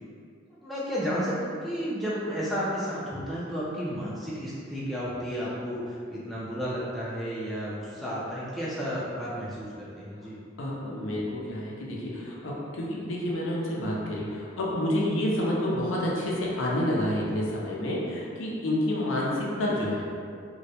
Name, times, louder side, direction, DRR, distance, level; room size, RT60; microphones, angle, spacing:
voice 1, 0.6-10.4, equal, ahead, -9 dB, 0.3 m, -32 dB
voice 2, 10.6-20.0, left 1 dB, 85° left, -4 dB, 0.5 m, -29 dB
2.3 x 2.0 x 2.7 m, 2.3 s
head